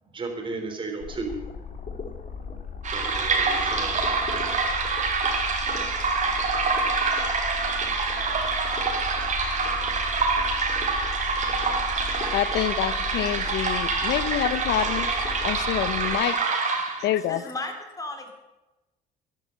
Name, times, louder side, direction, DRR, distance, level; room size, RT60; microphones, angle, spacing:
voice 1, 0.1-1.4 2.0-4.0, right 3 dB, 30° right, 4.1 m, -35 dB
sound 1, 1.0-16.2, left 5 dB, 45° left, 2.9 m, -36 dB
sound 2, 2.8-17.2, right 4 dB, 45° right, 3.4 m, -26 dB
voice 2, 12.3-16.6 17.0-17.5, left 13 dB, 80° left, 0.9 m, -27 dB
voice 3, 17.3-18.3, left 2 dB, 20° left, 3.5 m, -35 dB
13.5 x 11.0 x 8.9 m
cardioid pair, 110°, 17 cm